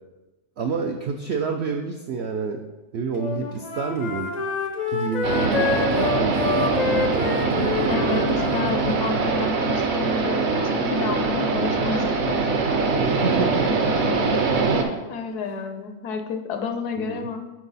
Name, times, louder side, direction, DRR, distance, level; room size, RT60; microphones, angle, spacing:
voice 1, 0.6-2.6 2.9-4.3 4.9-7.3 13.0-13.7 17.0-17.3, right 5 dB, 80° right, 4 dB, 0.5 m, -29 dB
Wind instrument woodwind instrument, 3.2-9.6, left 4 dB, 60° left, 0.4 m, -28 dB
sound 1, 5.2-14.8, right 4 dB, 55° right, 0.9 m, -23 dB
voice 2, 7.9-12.5 15.1-17.4, left 5 dB, 85° left, 6 dB, 1.2 m, -30 dB
6.0 x 5.5 x 4.0 m, 1.1 s
omnidirectional pair, 1.7 m